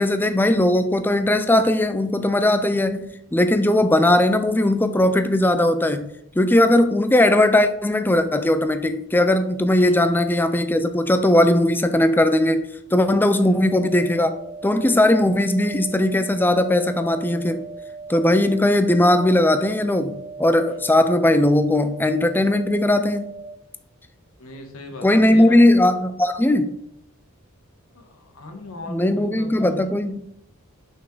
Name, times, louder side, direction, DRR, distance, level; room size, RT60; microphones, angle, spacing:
voice 1, 0.0-6.1 6.4-14.3 14.6-17.6 18.1-23.3 25.0-26.7 28.9-30.2, left 1 dB, 10° left, 0.4 m, -18 dB
voice 2, 9.8-10.1 13.4-13.7 20.7-21.0 24.4-25.6 27.9-29.9, left 2 dB, 75° left, 1.4 m, -39 dB
sound 1, 13.4-23.4, right 4 dB, 45° right, 1.8 m, -38 dB
5.6 x 5.4 x 3.9 m
head